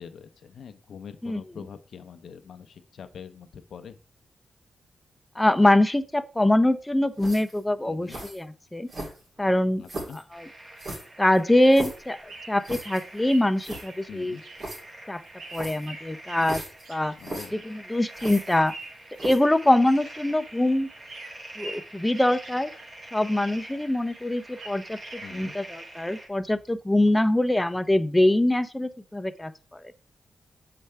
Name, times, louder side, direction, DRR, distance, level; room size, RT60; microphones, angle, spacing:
voice 1, 0.0-4.0 7.8-8.2 9.8-10.2 14.1-14.4 17.2-17.7 25.2-25.5, left 7 dB, 80° left, 0.5 m, -44 dB
voice 2, 5.4-8.9 9.4-9.8 10.3-10.5 11.2-14.4 15.1-15.2 15.5-16.6 16.9-17.1 17.5-18.7 19.2-20.9 21.6-22.7 23.1-29.9, left 1 dB, 10° left, 0.5 m, -23 dB
sound 1, 7.2-7.6 8.1-8.4 8.9-9.4 9.8-10.2 10.8-12.1 12.6-13.0 13.3-13.4 13.6-13.8 14.6-14.8 15.5-15.9 16.4-16.8 17.2-17.5 18.1-18.8 19.2-19.5, right 2 dB, 70° right, 2.9 m, -37 dB
sound 2, 10.3-26.3, right 1 dB, 45° right, 1.6 m, -46 dB
sound 3, 11.8-20.6 20.9-23.1 23.4-25.4, right 3 dB, 90° right, 1.0 m, -46 dB
6.7 x 4.6 x 3.3 m
cardioid pair, 65°, 0 cm